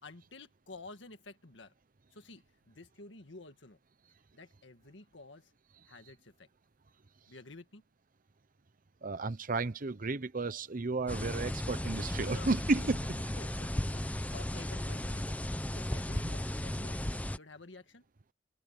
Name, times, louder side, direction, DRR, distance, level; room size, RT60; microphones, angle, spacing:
voice 1, 0.0-1.7 2.1-3.8 4.3-5.5 5.8-6.5 7.3-7.8 12.3-15.3 15.7-18.0, left 3 dB, 70° left, 1.9 m, -51 dB
voice 2, 9.0-13.0 16.2-16.3, right 3 dB, 45° right, 0.8 m, -33 dB
sound 1, 11.1-17.4, left 1 dB, 10° left, 0.8 m, -35 dB
head